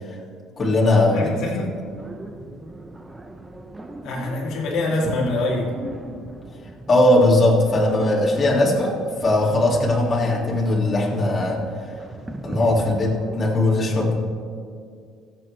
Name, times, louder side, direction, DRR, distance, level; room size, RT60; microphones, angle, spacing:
voice 1, 0.6-1.3 6.9-11.6 12.4-14.2, left 2 dB, 25° left, -4 dB, 2.2 m, -19 dB
voice 2, 1.1-1.8 4.0-5.7, left 2 dB, 60° left, -3 dB, 2.2 m, -25 dB
sound 1, 1.9-13.5, right 2 dB, 10° right, 0.7 m, -36 dB
22.0 x 7.7 x 3.2 m, 2.2 s
cardioid pair, 150°, 0 cm